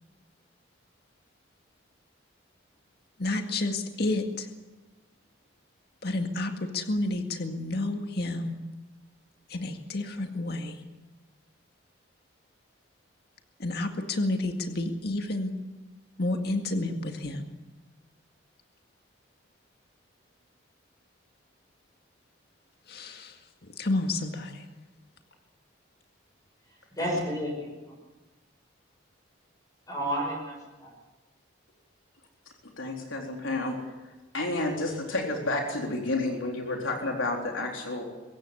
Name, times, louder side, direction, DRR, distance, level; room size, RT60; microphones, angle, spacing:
voice 1, 3.2-4.5 6.0-8.6 9.5-10.8 13.6-15.5 16.2-17.4 22.9-23.3 23.8-24.6, left 2 dB, 55° left, 2.0 m, -30 dB
voice 2, 26.9-27.9 29.9-30.9, equal, 20° left, 6.9 m, -32 dB
voice 3, 32.8-33.8 34.3-38.0, left 2 dB, 85° left, 4.0 m, -30 dB
24.0 x 15.5 x 9.8 m
head